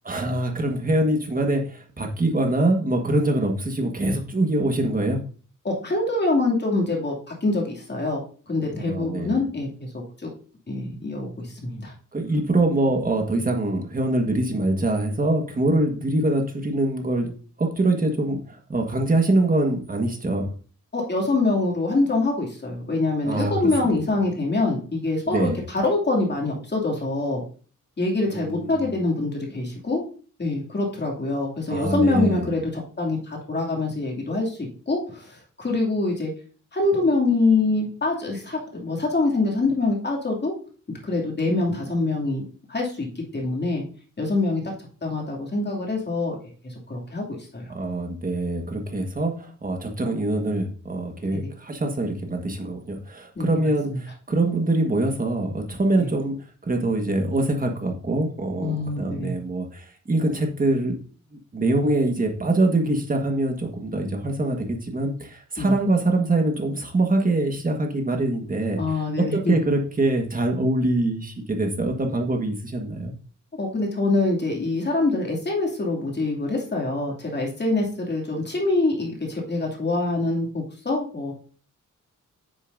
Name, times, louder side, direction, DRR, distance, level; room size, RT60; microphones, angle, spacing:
voice 1, 0.0-5.2 8.8-9.4 12.1-17.3 17.6-20.5 23.2-23.5 23.8-23.9 25.3-25.6 28.3-28.7 31.7-32.5 47.7-56.4 56.6-61.0 61.5-68.8 69.2-73.1, right 2 dB, 25° right, 3 dB, 1.6 m, -24 dB
voice 2, 5.6-9.7 9.9-10.3 10.7-11.9 20.9-27.4 28.0-30.0 30.4-36.3 36.7-40.5 40.9-42.4 42.7-43.8 44.2-44.6 45.0-46.4 46.6-47.2 47.5-47.7 53.4-53.5 56.0-56.1 58.6-59.3 65.6-65.7 68.8-69.6 73.6-81.3, left 2 dB, 35° left, -1 dB, 2.6 m, -25 dB
9.5 x 6.9 x 2.7 m, 0.40 s
wide cardioid pair, 125°, 31 cm